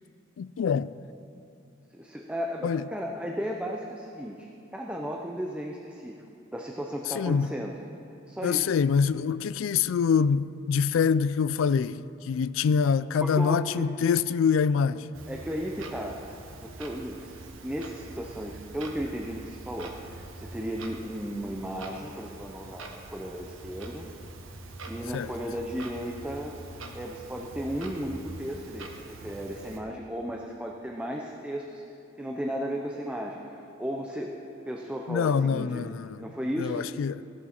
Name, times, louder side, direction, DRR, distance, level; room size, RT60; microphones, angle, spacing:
voice 1, 0.4-0.9 2.6-2.9 7.2-7.5 8.4-15.1 25.1-25.3 35.1-36.2 36.6-37.2, left 6 dB, 75° left, 0.3 m, -25 dB
voice 2, 1.9-6.2 6.5-7.8 8.2-8.8 13.2-13.9 15.3-16.2 16.6-24.1 24.8-26.6 26.9-31.8 32.2-34.4 34.7-35.9 36.2-36.9, equal, 5° right, 0.6 m, -35 dB
Clock, 15.1-29.8, right 2 dB, 85° right, 1.2 m, -44 dB
15.5 x 11.0 x 4.4 m
head